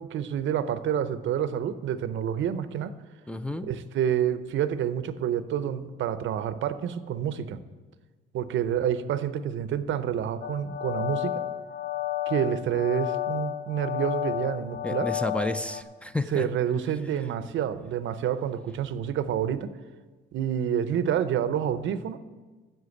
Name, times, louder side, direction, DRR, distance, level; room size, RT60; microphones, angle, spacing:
voice 1, 0.0-2.9 3.7-7.6 8.3-11.4 12.3-15.1 16.3-19.7 20.3-22.2, right 9 dB, 75° right, 13 dB, 0.6 m, -28 dB
voice 2, 3.3-3.7 14.8-16.5, left 1 dB, 5° left, 10 dB, 0.5 m, -31 dB
sound 1, 10.4-15.8, left 13 dB, 55° left, 0.9 m, -31 dB
7.9 x 7.5 x 8.3 m, 1.3 s
cardioid pair, 90°, 20 cm